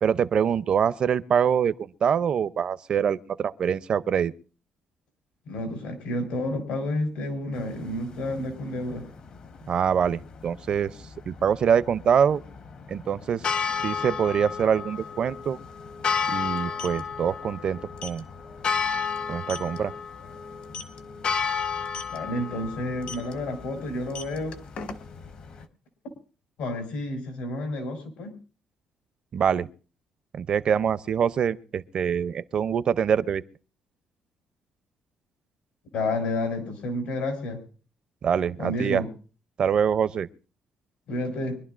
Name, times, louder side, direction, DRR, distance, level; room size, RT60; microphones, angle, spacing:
voice 1, 0.0-4.3 9.7-10.9 11.3-12.4 12.9-13.4 13.8-15.6 16.3-18.2 19.3-19.9 29.3-29.7 30.3-33.4 38.2-39.0 39.6-40.3, right 7 dB, 45° right, 0.5 m, -24 dB
voice 2, 5.5-9.1 22.1-24.6 25.5-25.6 26.6-28.3 35.9-37.6 38.6-39.1 41.1-41.6, left 1 dB, 90° left, 3.8 m, -30 dB
sound 1, 7.5-25.6, left 6 dB, 45° left, 0.8 m, -33 dB
sound 2, 15.0-15.1 15.3-15.5 16.5-17.0 18.0-18.2 18.6-18.8 19.1-19.2 19.5-19.8 20.6-21.0 21.8-22.2 23.0-23.3 24.0-25.3, left 4 dB, 70° left, 1.6 m, -37 dB
24.5 x 11.5 x 2.5 m
cardioid pair, 140°, 2 cm